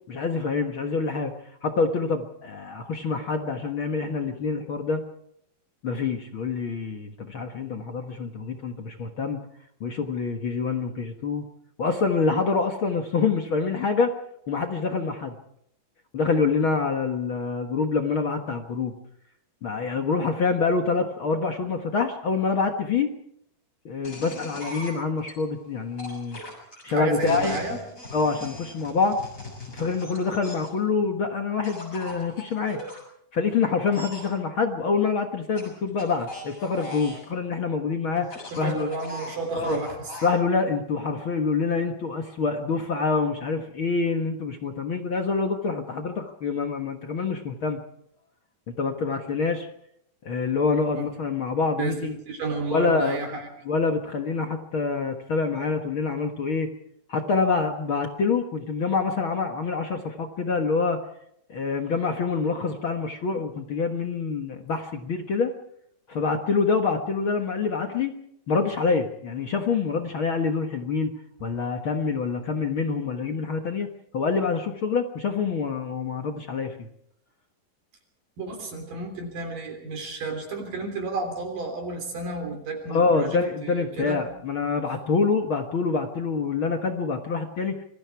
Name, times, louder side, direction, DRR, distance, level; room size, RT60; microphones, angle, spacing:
voice 1, 0.1-1.3 1.6-5.0 5.8-9.4 9.8-11.4 11.8-14.1 14.5-15.3 16.1-18.9 19.6-23.1 23.8-26.4 26.8-27.5 28.1-29.2 29.7-32.8 33.3-38.9 39.5-39.8 40.2-47.8 48.7-49.7 50.2-52.2 52.7-53.4 53.6-56.7 57.1-61.0 61.5-65.5 66.1-68.1 68.5-71.1 71.4-73.9 74.1-76.9 82.9-87.8, left 4 dB, 55° left, 4 dB, 1.5 m, -26 dB
sound 1, 24.0-25.3 26.0-30.8 31.6-33.0 33.9-34.3 35.6-37.3 38.2-40.4, left 1 dB, 20° left, 7.3 m, -40 dB
voice 2, 26.9-27.8 38.5-40.1 50.9-51.1 51.8-52.0 52.3-53.5 78.4-84.2, right 3 dB, 60° right, 3 dB, 4.9 m, -31 dB
26.5 x 23.0 x 4.7 m, 0.72 s
omnidirectional pair, 4.4 m